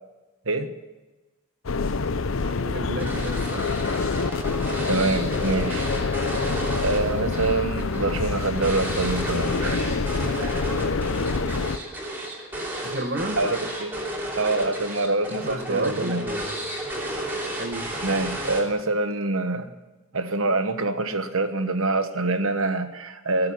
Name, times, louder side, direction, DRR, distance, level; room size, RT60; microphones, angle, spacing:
sound 1, 1.6-11.8, left 4 dB, 65° left, 0.6 m, -27 dB
voice 1, 2.4-3.9 12.8-13.5 15.4-16.6 17.6-18.0, right 1 dB, 50° right, 6 dB, 1.7 m, -33 dB
sound 2, 3.0-18.9, right 1 dB, 10° right, 3.1 m, -32 dB
voice 2, 4.9-6.2 6.8-10.6 13.4-13.9 14.3-16.3 18.0-19.7 20.1-23.5, right 2 dB, 70° right, 8 dB, 1.3 m, -26 dB
20.0 x 6.7 x 9.6 m, 1.1 s
head